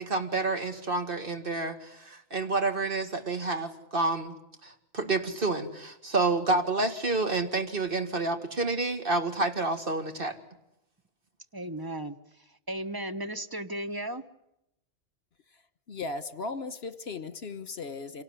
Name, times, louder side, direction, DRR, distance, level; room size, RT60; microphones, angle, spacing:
voice 1, 0.0-4.4 4.6-10.4, right 3 dB, 50° right, 2.4 m, -29 dB
voice 2, 11.5-12.2 12.7-14.2, right 1 dB, 20° right, 1.3 m, -35 dB
voice 3, 15.9-18.2, left 3 dB, 60° left, 1.6 m, -36 dB
27.5 x 18.5 x 9.8 m
omnidirectional pair, 1.2 m